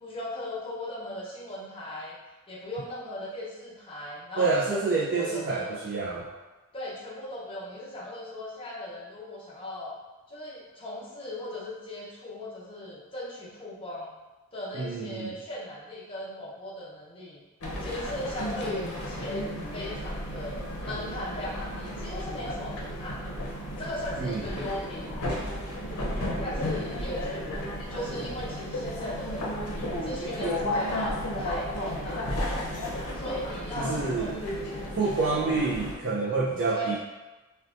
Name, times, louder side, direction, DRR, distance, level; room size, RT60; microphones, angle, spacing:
voice 1, 0.0-2.1 2.5-5.8 6.7-9.9 10.3-14.1 14.5-17.4 17.8-23.4 23.8-25.2 26.4-29.7 30.0-32.4 33.1-35.5 36.7-37.0, left 1 dB, 25° left, -7 dB, 0.7 m, -38 dB
voice 2, 4.4-6.3 14.7-15.4 24.2-24.5 33.8-34.3 35.0-37.0, right 4 dB, 55° right, -5 dB, 0.4 m, -28 dB
sound 1, 17.6-36.0, left 1 dB, 80° left, 0.6 m, -33 dB
3.8 x 2.2 x 2.4 m, 1.1 s
head